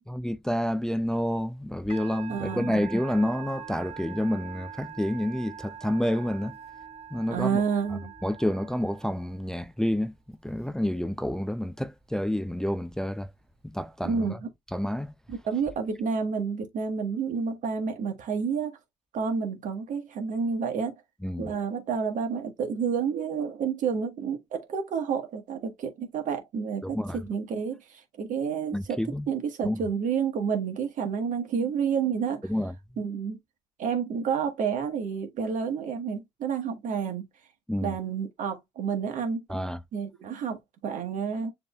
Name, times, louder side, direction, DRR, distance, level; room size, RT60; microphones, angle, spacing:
voice 1, 0.1-6.5 7.1-7.6 8.2-10.1 10.4-13.3 13.6-14.4 14.7-15.1 21.2-21.5 26.8-27.2 28.7-29.3 29.6-29.8 32.5-32.7 37.7-37.9 39.5-39.8, left 1 dB, 5° left, 0.4 m, -29 dB
Musical instrument, 1.9-9.5, right 7 dB, 45° right, 2.6 m, -44 dB
voice 2, 2.3-2.8 7.3-8.1 14.0-14.5 15.3-18.8 19.1-21.0 21.4-29.0 29.3-32.5 33.0-33.4 33.8-37.2 37.8-39.4 39.9-41.5, right 6 dB, 65° right, 1.4 m, -30 dB
6.8 x 3.0 x 2.3 m
supercardioid pair, 60°, 14 cm